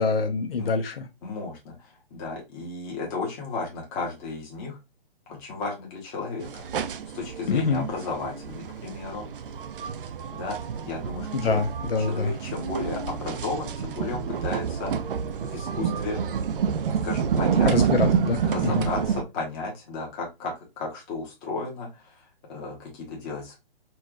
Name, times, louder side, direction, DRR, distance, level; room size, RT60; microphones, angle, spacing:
voice 1, 0.0-1.1 7.5-7.8 11.3-12.3 17.6-18.9, left 4 dB, 75° left, 0.7 m, -25 dB
voice 2, 1.2-4.8 5.3-6.7 7.1-9.3 10.3-11.6 12.1-15.1 15.4-16.2 17.0-17.7 18.4-22.2 22.5-23.6, left 3 dB, 20° left, 1.0 m, -34 dB
sound 1, 6.4-19.2, right 7 dB, 65° right, 0.5 m, -28 dB
4.3 x 2.3 x 2.3 m
hypercardioid pair, 150°, 30 cm